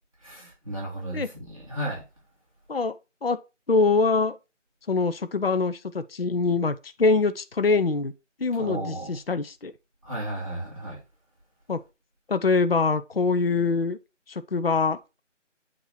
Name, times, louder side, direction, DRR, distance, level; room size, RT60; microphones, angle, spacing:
voice 1, 0.2-2.0 8.6-9.2 10.0-11.0, right 1 dB, 25° right, 1.9 m, -34 dB
voice 2, 3.7-4.4 4.9-8.1 8.4-9.7 11.7-11.8 12.3-14.0 14.3-15.0, left 4 dB, 50° left, 0.5 m, -24 dB
8.4 x 2.8 x 6.2 m
figure-of-eight pair, 180°, 38 cm